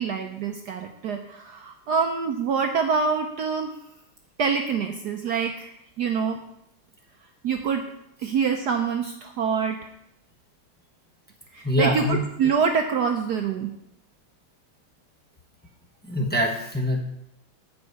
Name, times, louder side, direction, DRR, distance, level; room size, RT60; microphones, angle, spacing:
voice 1, 0.0-3.7 4.4-6.4 7.4-7.9 8.2-9.8 11.5-13.7, right 6 dB, 70° right, 4 dB, 1.0 m, -26 dB
voice 2, 11.6-12.2 16.1-17.0, left 1 dB, 5° left, -1 dB, 0.8 m, -24 dB
13.5 x 5.3 x 4.7 m, 0.80 s
omnidirectional pair, 2.3 m